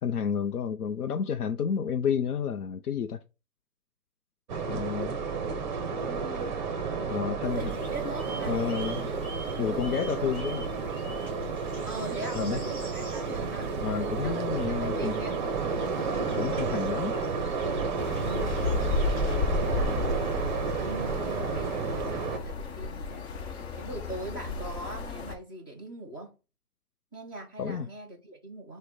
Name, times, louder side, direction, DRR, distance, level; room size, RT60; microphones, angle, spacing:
voice 1, 0.0-3.2 4.7-5.2 7.1-7.7 8.5-9.1 9.6-10.7 12.3-12.6 13.8-15.1 16.3-17.1 27.6-27.9, left 7 dB, 90° left, 0.6 m, -30 dB
sound 1, 4.5-22.4, right 5 dB, 30° right, 0.7 m, -31 dB
voice 2, 6.0-6.6 6.9-8.8 9.6-10.0 11.9-13.7 14.2-15.9 18.2-18.6 19.5-26.4 27.1-28.8, right 2 dB, 15° left, 0.4 m, -41 dB
sound 2, 7.5-19.4, right 2 dB, 10° right, 2.6 m, -48 dB
sound 3, 18.0-25.3, left 4 dB, 45° left, 0.9 m, -33 dB
6.3 x 2.1 x 3.8 m
hypercardioid pair, 140°, 44 cm